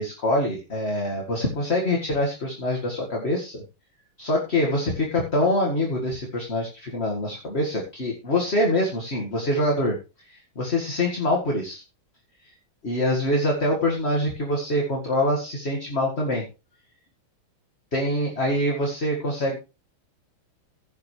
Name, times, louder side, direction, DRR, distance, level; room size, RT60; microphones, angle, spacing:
voice 1, 0.0-3.6 4.2-10.0 10.3-11.8 12.8-16.4 17.9-19.6, left 1 dB, 30° left, 0 dB, 2.1 m, -25 dB
16.0 x 8.0 x 3.3 m, 0.30 s
omnidirectional pair, 2.3 m